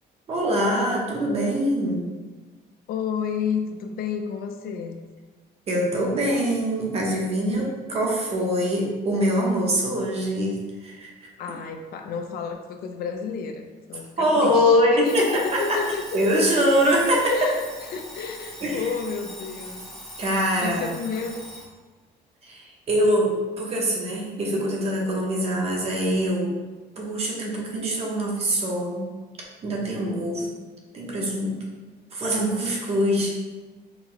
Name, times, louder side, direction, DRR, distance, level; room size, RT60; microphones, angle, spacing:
voice 1, 0.3-2.1 5.7-11.1 14.2-15.8 16.1-17.3 18.6-18.8 20.2-20.9 22.4-26.6 27.0-29.1 29.6-30.5 30.9-31.6 32.1-33.4, equal, 35° right, -2 dB, 0.8 m, -23 dB
voice 2, 2.9-5.0 7.5-7.6 11.4-16.2 17.3-19.8 20.6-21.4, left 6 dB, 60° left, 5 dB, 0.4 m, -31 dB
Alarm, 15.0-21.7, equal, 5° left, 0.9 m, -41 dB
4.5 x 2.1 x 3.8 m, 1.3 s
cardioid pair, 165°, 18 cm